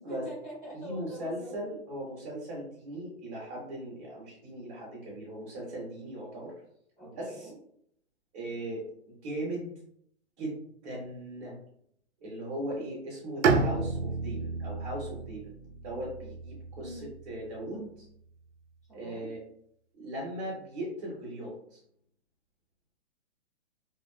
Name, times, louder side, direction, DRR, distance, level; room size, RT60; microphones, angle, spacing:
voice 1, 0.0-1.6 7.0-7.6 16.8-17.1 18.9-19.3, right 1 dB, ahead, -20 dB, 0.5 m, -44 dB
voice 2, 0.7-6.5 7.0-7.5 8.3-9.7 10.4-10.6 10.8-11.5 12.2-15.4 15.8-18.1 18.9-19.4 20.0-21.8, right 1 dB, 35° right, -5 dB, 0.8 m, -38 dB
Bowed string instrument, 13.4-17.4, right 4 dB, 80° right, 0.5 m, -31 dB
2.4 x 2.3 x 2.2 m, 0.69 s
hypercardioid pair, 165°, 35 cm